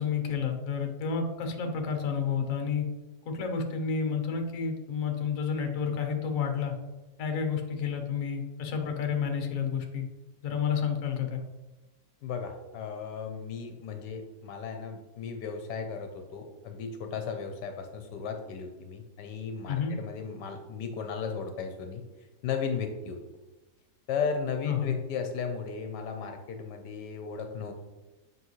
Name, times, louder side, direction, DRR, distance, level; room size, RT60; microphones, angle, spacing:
voice 1, 0.0-2.9 3.3-6.7 7.2-10.1 10.4-11.4 19.7-19.9 24.6-24.9, left 6 dB, 55° left, 5 dB, 1.2 m, -30 dB
voice 2, 12.2-22.0 22.4-23.2 24.1-27.7, left 6 dB, 75° left, 5 dB, 1.3 m, -35 dB
7.9 x 5.5 x 3.1 m, 1.1 s
omnidirectional pair, 1.9 m